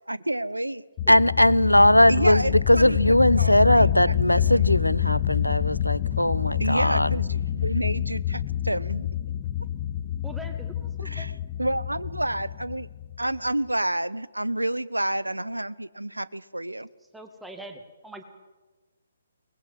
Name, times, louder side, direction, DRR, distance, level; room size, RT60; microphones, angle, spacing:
voice 1, 0.1-0.8 2.1-3.0 3.4-4.1 4.4-4.7 6.6-9.1 11.0-11.3 11.6-12.9 13.2-16.9, right 1 dB, 80° right, 19 dB, 0.8 m, -29 dB
sound 1, 1.0-13.4, left 10 dB, 25° left, 1.0 m, -27 dB
voice 2, 1.1-7.1, left 1 dB, 85° left, 21 dB, 0.6 m, -19 dB
voice 3, 10.2-11.3 17.1-18.2, equal, 5° right, 6 dB, 2.1 m, -42 dB
23.0 x 20.0 x 7.7 m, 1.2 s
figure-of-eight pair, 135°, 0 cm